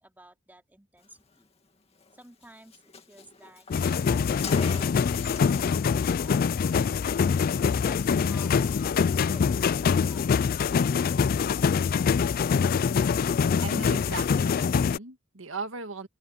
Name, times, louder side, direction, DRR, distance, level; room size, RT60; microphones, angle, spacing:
voice 1, 0.0-1.4 2.1-7.2 7.8-10.4, right 1 dB, 10° right, 3.0 m, -53 dB
Car, 2.0-2.1 2.4-2.5 2.7-5.7 5.9-6.2, left 4 dB, 30° left, 2.4 m, -41 dB
sound 1, 3.7-15.0, left 6 dB, 45° left, 0.3 m, -24 dB
voice 2, 13.6-16.1, right 3 dB, 75° right, 2.0 m, -37 dB
open air
head